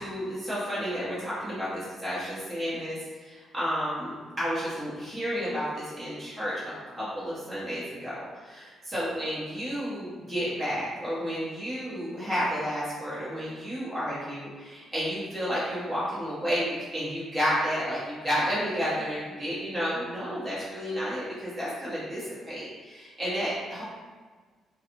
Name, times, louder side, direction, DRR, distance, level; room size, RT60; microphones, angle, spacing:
voice 1, 0.0-6.6 7.0-23.8, equal, 25° right, -10 dB, 1.2 m, -31 dB
2.3 x 2.3 x 3.0 m, 1.5 s
cardioid pair, 90°, 0 cm